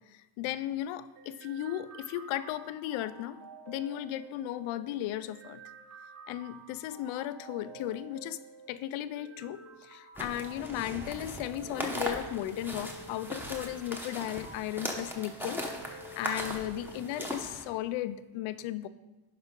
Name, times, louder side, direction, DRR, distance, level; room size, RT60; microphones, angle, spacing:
voice 1, 0.1-5.6 6.3-8.4 8.7-18.9, left 13 dB, 70° left, 14 dB, 0.6 m, -36 dB
sound 1, 1.2-17.1, right 2 dB, 35° right, 1.7 m, -50 dB
sound 2, 10.2-17.6, equal, 5° right, 0.9 m, -39 dB
11.0 x 5.0 x 3.7 m, 1.1 s
cardioid pair, 125°, 50 cm